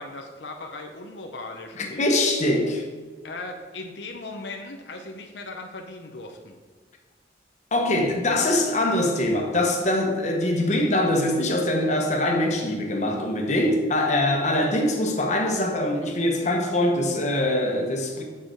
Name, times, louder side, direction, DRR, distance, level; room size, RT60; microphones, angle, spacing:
voice 1, 0.0-2.1 3.2-6.6, left 2 dB, 85° left, 0.9 m, -38 dB
voice 2, 1.8-2.8 7.7-18.2, left 1 dB, 40° left, 1.2 m, -23 dB
7.1 x 6.7 x 4.7 m
head